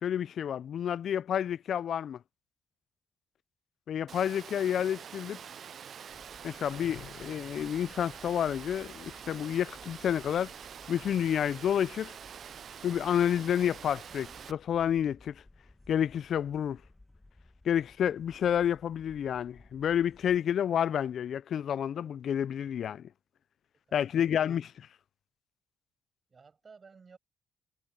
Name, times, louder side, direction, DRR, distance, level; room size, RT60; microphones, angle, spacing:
voice 1, 0.0-2.2 3.9-5.4 6.4-10.5 10.9-12.1 12.8-15.4 15.9-16.8 17.7-23.1 23.9-24.9, left 9 dB, 65° left, 0.3 m, -30 dB
Water, 4.1-14.5, right 8 dB, 55° right, 0.3 m, -46 dB
sound 1, 6.1-20.4, left 2 dB, 15° left, 1.7 m, -58 dB
sound 2, 6.7-8.2, left 12 dB, 85° left, 0.7 m, -51 dB
voice 2, 24.0-24.3 26.3-27.2, right 5 dB, 35° right, 7.4 m, -55 dB
cardioid pair, 90°, 0 cm